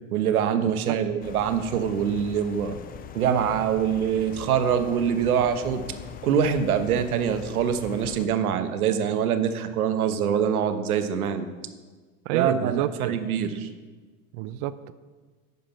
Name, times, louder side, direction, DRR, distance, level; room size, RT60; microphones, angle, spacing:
voice 1, 0.1-2.8 3.1-5.8 6.2-11.5 12.3-13.7, right 8 dB, 85° right, 9 dB, 0.9 m, -24 dB
voice 2, 0.7-1.0 12.3-13.1 14.3-14.9, right 14 dB, 60° right, 14 dB, 0.5 m, -29 dB
sound 1, 1.2-8.3, left 8 dB, 25° left, 0.4 m, -41 dB
9.3 x 5.2 x 5.8 m, 1.4 s
hypercardioid pair, 90°, 42 cm